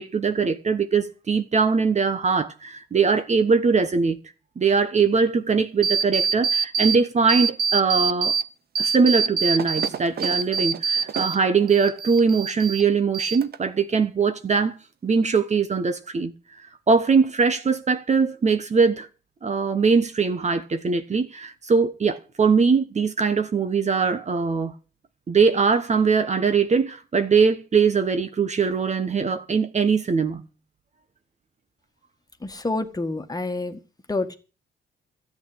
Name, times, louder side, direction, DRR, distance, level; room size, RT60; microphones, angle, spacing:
voice 1, 0.0-4.2 4.6-8.3 8.8-14.7 15.0-16.3 16.9-19.1 19.4-24.7 25.3-30.4, right 5 dB, 35° right, 1.2 m, -21 dB
sound 1, 5.8-7.0 7.3-8.4 8.8-11.4 11.7-12.8 13.1-13.8, right 6 dB, 50° right, 1.0 m, -24 dB
voice 2, 32.4-33.8 34.1-34.4, left 2 dB, 20° left, 1.8 m, -28 dB
13.0 x 8.5 x 8.0 m
cardioid pair, 90°, 20 cm